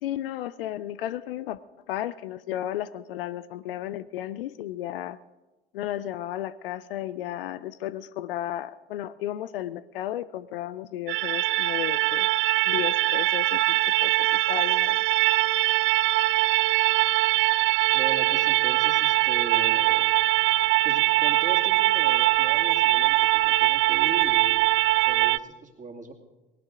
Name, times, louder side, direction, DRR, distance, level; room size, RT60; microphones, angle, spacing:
voice 1, 0.0-1.6 1.9-5.2 5.7-12.3 12.7-15.0, left 13 dB, 70° left, 16 dB, 0.6 m, -34 dB
sound 1, 11.1-25.4, right 19 dB, 45° right, 0.4 m, -22 dB
voice 2, 17.9-20.2 20.8-24.7 25.0-26.1, right 4 dB, 25° right, 2 dB, 2.5 m, -38 dB
19.0 x 18.5 x 3.8 m, 1.1 s
figure-of-eight pair, 65°, 29 cm